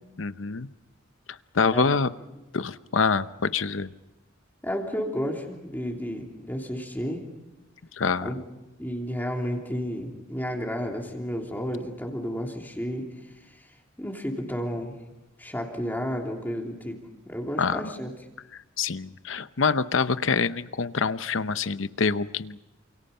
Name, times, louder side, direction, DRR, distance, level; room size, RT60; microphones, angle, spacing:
voice 1, 0.2-0.7 1.3-2.1 2.5-3.9 7.9-8.3 17.6-17.8 18.8-22.6, left 5 dB, 75° left, 13 dB, 0.8 m, -26 dB
voice 2, 4.6-7.2 8.2-8.4 8.8-13.1 13.4-13.7 14.0-15.0 15.4-18.1, equal, 10° left, 1 dB, 3.1 m, -32 dB
28.5 x 28.0 x 5.6 m, 1.0 s
head